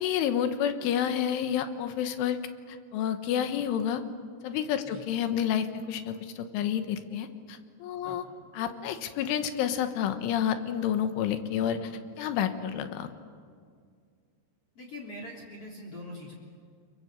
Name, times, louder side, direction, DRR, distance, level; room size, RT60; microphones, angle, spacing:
voice 1, 0.0-2.4 2.7-4.0 4.4-8.2 8.5-11.9 12.2-13.1, left 9 dB, 85° left, 9 dB, 3.8 m, -29 dB
voice 2, 14.8-16.3, left 1 dB, 35° left, -1 dB, 3.9 m, -43 dB
30.0 x 23.0 x 8.1 m, 2.1 s
omnidirectional pair, 5.5 m